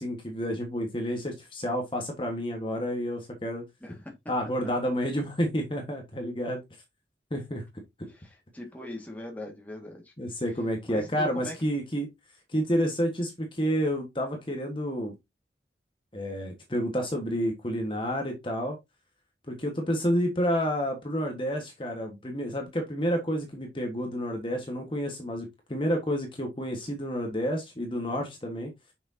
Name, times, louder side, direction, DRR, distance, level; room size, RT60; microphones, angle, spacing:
voice 1, 0.0-3.6 4.3-6.6 7.3-7.6 10.2-12.1 12.5-15.1 16.1-18.8 19.5-28.7, equal, 30° left, 1.5 m, -30 dB
voice 2, 3.8-4.1 8.1-10.1 10.9-11.6, left 1 dB, 10° left, 1.8 m, -41 dB
6.8 x 6.1 x 2.8 m
head